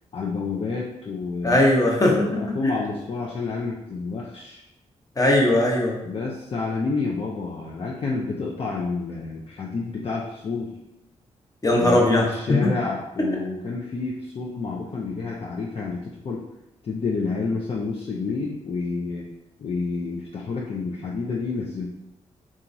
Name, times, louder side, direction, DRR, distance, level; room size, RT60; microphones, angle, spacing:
voice 1, 0.1-1.6 2.1-4.6 6.0-10.7 11.8-16.4 16.8-19.3 19.6-21.9, left 4 dB, 50° left, -3 dB, 0.4 m, -29 dB
voice 2, 1.4-2.7 5.2-5.9 11.6-12.2 12.5-12.7, left 1 dB, 30° left, -2 dB, 0.8 m, -19 dB
2.9 x 2.4 x 2.5 m, 0.89 s
cardioid pair, 65°, 13 cm